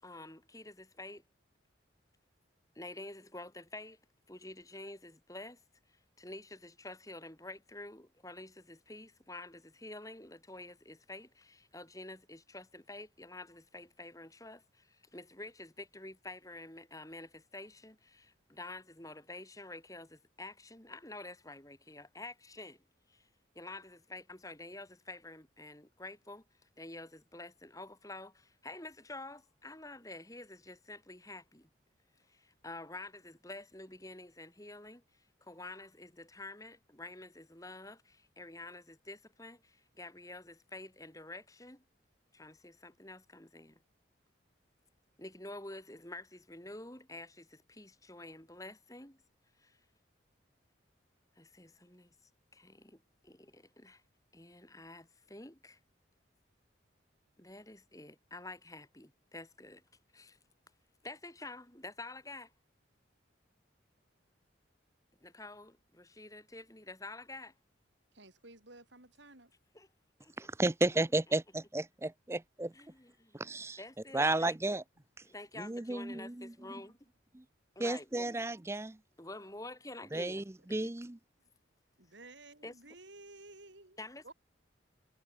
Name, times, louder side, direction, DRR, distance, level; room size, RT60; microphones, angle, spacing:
voice 1, 0.0-1.2 2.8-4.0 4.3-5.6 6.2-22.8 23.1-23.3 23.6-26.4 26.8-31.7 32.3-35.0 35.4-41.8 42.3-43.8 45.2-49.2 49.6-49.8 51.4-52.1 52.5-54.0 54.3-55.8 57.4-59.8 60.1-60.4 61.0-62.5 65.2-67.5 69.7-69.9 70.2-70.3 72.7-73.4 73.8-74.6 75.2-76.9 77.8-78.4 79.2-80.9 82.6-82.7 84.0-84.3, left 2 dB, 15° left, 4.0 m, -49 dB
voice 2, 68.1-69.5 82.0-84.0 84.2-84.3, right 2 dB, 70° right, 8.0 m, -54 dB
voice 3, 70.4-71.4 71.7-71.8 72.3-72.7 73.3-73.8 74.1-74.8 75.6-76.5 77.8-78.9 80.1-80.4 80.7-81.2, right 2 dB, 15° right, 0.5 m, -32 dB
head